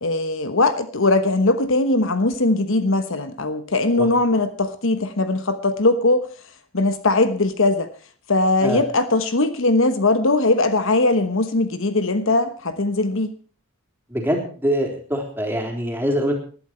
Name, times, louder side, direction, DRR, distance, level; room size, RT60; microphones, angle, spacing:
voice 1, 0.0-6.3 6.7-7.9 8.3-13.3, left 2 dB, 60° left, 11 dB, 1.2 m, -20 dB
voice 2, 14.1-16.3, equal, 10° right, 2 dB, 3.6 m, -24 dB
19.5 x 12.0 x 4.5 m, 0.40 s
head